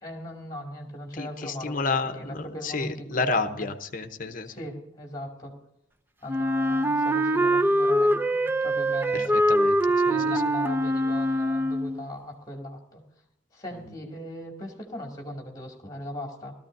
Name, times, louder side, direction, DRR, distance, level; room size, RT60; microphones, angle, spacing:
voice 1, 0.0-3.7 4.4-5.5 6.2-9.3 10.1-13.0 13.5-16.5, equal, 20° left, 1 dB, 2.4 m, -38 dB
voice 2, 1.1-4.5 9.1-10.4 13.7-13.8, left 3 dB, 45° left, 8 dB, 0.9 m, -31 dB
Wind instrument woodwind instrument, 6.3-12.1, right 1 dB, 10° right, 0.5 m, -23 dB
17.5 x 13.5 x 2.7 m, 0.81 s
head